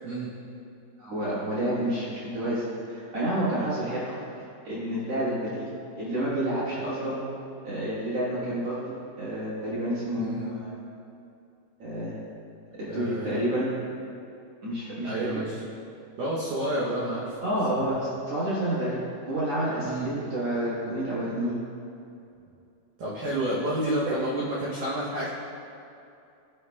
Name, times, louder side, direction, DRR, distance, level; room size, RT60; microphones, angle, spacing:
voice 1, 1.0-4.2 4.6-5.7 6.0-7.2 7.6-10.7 11.8-12.1 12.8-13.7 14.6-15.3 17.4-19.0 19.3-21.6 24.0-24.1, right 1 dB, 60° right, -11 dB, 1.6 m, -29 dB
voice 2, 10.2-10.5 12.9-13.5 15.0-15.6 16.2-17.3 19.8-20.1 23.0-25.3, right 1 dB, 90° right, -7 dB, 1.8 m, -30 dB
14.0 x 4.8 x 2.3 m, 2.6 s
omnidirectional pair, 5.2 m